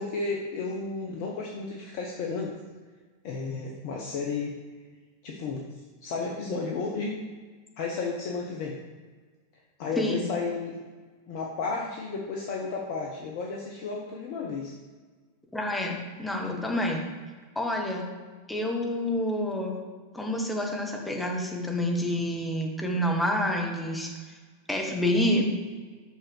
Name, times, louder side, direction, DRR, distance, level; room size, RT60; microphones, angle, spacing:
voice 1, 0.0-2.6 3.2-4.5 4.9-5.0 5.2-5.6 6.0-7.2 7.8-8.8 9.8-10.8 11.3-14.7, left 4 dB, 45° left, -1 dB, 0.9 m, -32 dB
voice 2, 10.0-10.3 15.5-17.0 17.5-18.1 18.5-19.7 20.1-24.1 24.7-25.5, left 1 dB, 5° left, 0 dB, 1.3 m, -28 dB
5.7 x 5.6 x 4.5 m, 1.4 s
figure-of-eight pair, 90°, 0 cm